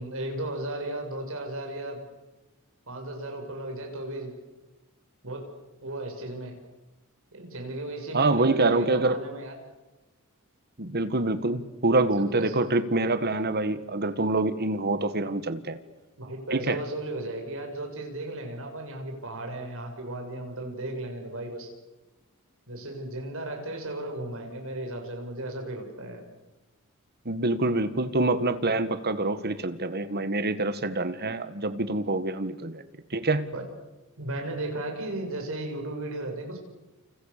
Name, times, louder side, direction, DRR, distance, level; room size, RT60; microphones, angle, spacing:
voice 1, 0.0-2.0 2.9-4.3 5.2-5.5 5.8-6.5 7.3-9.5 12.2-12.5 16.2-21.7 22.7-26.2 33.5-33.6 34.2-36.6, right 1 dB, 65° right, 3 dB, 6.5 m, -35 dB
voice 2, 8.1-9.2 10.8-15.8 16.5-16.8 27.3-32.8 33.1-33.5, right 2 dB, 45° right, 12 dB, 1.7 m, -26 dB
29.0 x 29.0 x 6.8 m, 1.1 s
head